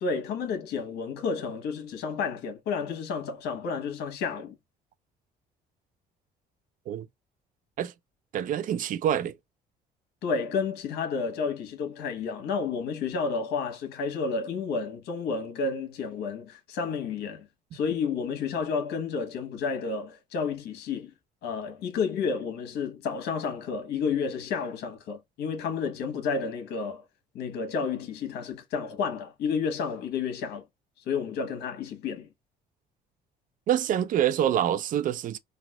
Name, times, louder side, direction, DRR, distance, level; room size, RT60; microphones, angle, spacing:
voice 1, 0.0-4.5 10.2-17.5 17.7-21.1 21.4-27.0 27.3-30.6 31.1-32.3, left 5 dB, 75° left, 1.1 m, -31 dB
voice 2, 8.3-9.3 33.7-35.4, right 10 dB, 50° right, 0.4 m, -26 dB
4.1 x 2.3 x 2.2 m
cardioid pair, 110°, 17 cm